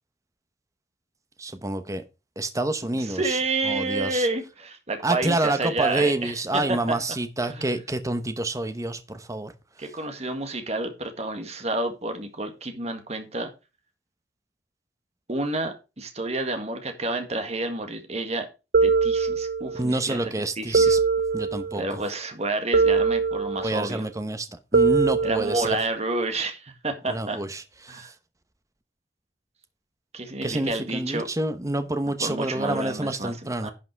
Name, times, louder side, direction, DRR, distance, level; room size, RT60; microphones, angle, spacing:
voice 1, 1.4-2.0 2.4-3.4 3.6-4.3 5.0-9.5 19.7-21.0 21.3-22.0 23.6-25.8 27.1-28.1 30.4-33.7, right 2 dB, 20° right, 1.0 m, -28 dB
voice 2, 2.8-6.9 7.5-7.7 9.8-13.5 15.3-18.5 18.8-20.3 20.6-21.0 21.7-24.1 25.2-27.4 27.9-28.1 30.1-31.3 32.2-33.7, right 2 dB, 35° right, 1.8 m, -29 dB
sound 1, 18.7-19.9 20.7-21.9 22.7-23.9 24.7-25.9, right 4 dB, 60° right, 0.9 m, -22 dB
11.5 x 5.8 x 4.6 m
head